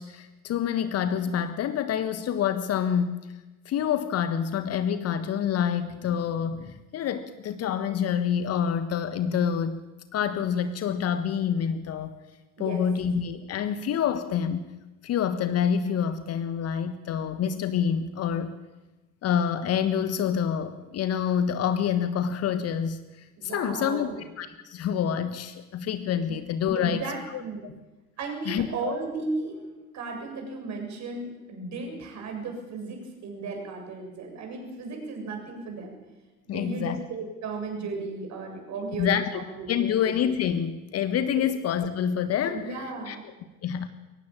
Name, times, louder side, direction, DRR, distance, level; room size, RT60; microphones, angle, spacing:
voice 1, 0.0-3.2 3.6-9.8 10.1-12.2 12.6-14.6 15.0-18.5 19.2-24.1 24.4-27.1 27.3-27.7 28.4-28.9 36.5-37.0 39.0-39.4 39.7-43.2 43.6-43.9, left 8 dB, 35° left, 11 dB, 1.5 m, -27 dB
voice 2, 23.4-24.2 26.7-27.7 28.2-29.6 29.9-35.9 36.5-40.0 41.3-41.4 42.5-43.2, right 3 dB, 40° right, 3 dB, 7.8 m, -35 dB
23.5 x 18.0 x 8.7 m, 1.1 s
figure-of-eight pair, 75°, 45 cm